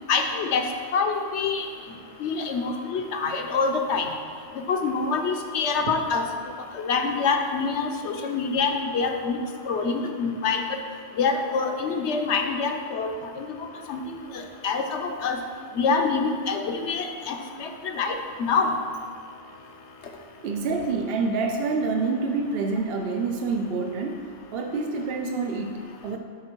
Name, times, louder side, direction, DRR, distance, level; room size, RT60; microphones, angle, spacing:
voice 1, 0.1-0.7 0.9-1.6 2.2-4.1 4.7-6.2 6.7-9.4 9.7-10.6 11.2-13.1 13.4-13.5 13.9-14.0 14.3-15.4 15.8-18.7, left 5 dB, 70° left, 5 dB, 1.0 m, -26 dB
voice 2, 17.4-17.9 20.4-24.3 24.5-26.2, right 4 dB, 60° right, 3 dB, 0.7 m, -28 dB
12.0 x 4.3 x 4.5 m, 2.1 s
omnidirectional pair, 1.3 m